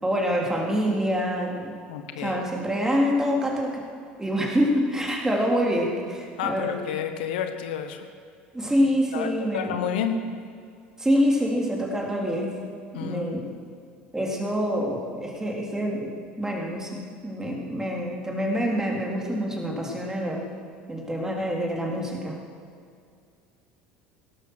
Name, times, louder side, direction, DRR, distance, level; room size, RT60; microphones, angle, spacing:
voice 1, 0.0-1.7 2.2-3.8 4.2-6.8 8.5-9.8 11.0-12.6 12.9-13.5 14.1-20.5 20.9-22.4, equal, 10° right, -1 dB, 3.7 m, -26 dB
voice 2, 1.9-2.4 6.4-8.1 9.1-10.2 12.9-13.4, left 8 dB, 75° left, 8 dB, 1.1 m, -30 dB
17.5 x 12.5 x 6.5 m, 2.3 s
hypercardioid pair, 75°, 5 cm